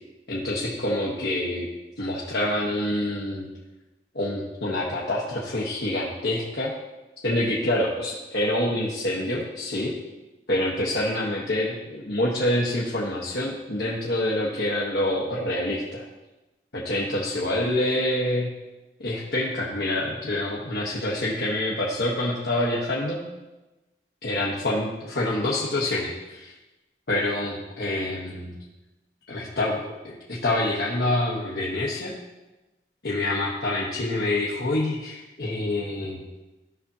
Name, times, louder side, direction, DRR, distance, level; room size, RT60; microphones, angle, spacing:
voice 1, 0.3-1.7 2.0-3.5 4.1-6.7 7.2-9.9 10.5-16.0 16.7-18.5 19.0-23.2 24.2-26.5 27.1-28.5 29.3-32.2 33.0-36.2, left 1 dB, 70° left, -5 dB, 1.1 m, -26 dB
14.0 x 5.8 x 2.8 m, 1.1 s
head